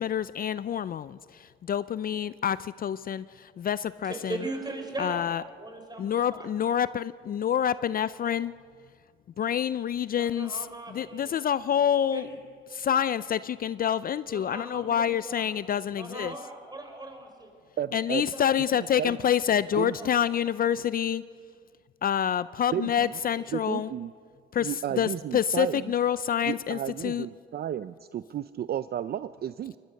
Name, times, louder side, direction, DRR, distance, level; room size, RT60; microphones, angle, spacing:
voice 1, 0.0-4.4 5.0-5.4 6.0-8.5 9.4-12.3 12.7-16.3 17.9-21.2 22.0-23.9 24.5-27.3, left 9 dB, 45° left, 16 dB, 0.4 m, -27 dB
voice 2, 4.0-5.3 5.6-6.5 10.1-11.3 12.1-12.4 14.3-15.5 16.0-17.5 17.9-19.1 19.7-20.1 23.4-23.5, right 2 dB, 20° right, 5 dB, 4.6 m, -39 dB
voice 3, 17.8-18.3 18.8-19.2 19.8-20.0 22.7-23.2 23.5-24.1 24.6-25.9 26.4-29.8, right 10 dB, 50° right, 14 dB, 0.5 m, -33 dB
23.5 x 20.0 x 6.5 m, 2.1 s
cardioid pair, 90°, 20 cm